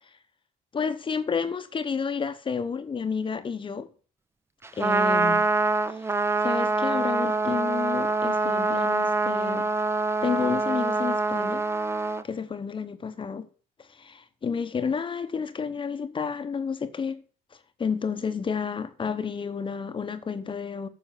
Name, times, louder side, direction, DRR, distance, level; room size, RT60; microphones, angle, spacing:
voice 1, 0.7-3.9 4.8-5.5 6.4-9.7 10.2-11.6 12.2-13.4 14.0-17.2 17.8-20.9, left 6 dB, 30° left, 1.0 m, -30 dB
Trumpet, 4.6-12.2, right 3 dB, 15° right, 0.7 m, -25 dB
9.1 x 6.3 x 7.2 m
cardioid pair, 110°, 17 cm